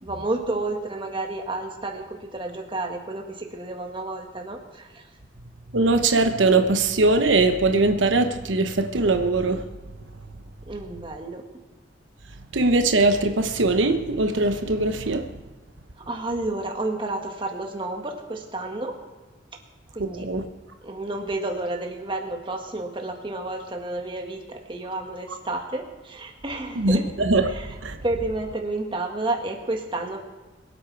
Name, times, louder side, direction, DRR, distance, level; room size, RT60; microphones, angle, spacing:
voice 1, 0.0-5.1 10.7-11.4 16.1-19.0 19.9-20.3 20.8-27.0 27.5-27.7 28.0-30.3, right 2 dB, 25° right, 2 dB, 1.6 m, -31 dB
voice 2, 5.7-9.6 12.5-15.2 20.1-20.4 26.8-27.4 27.8-28.0, right 2 dB, 90° right, 7 dB, 1.0 m, -21 dB
23.0 x 8.4 x 4.7 m, 1.2 s
head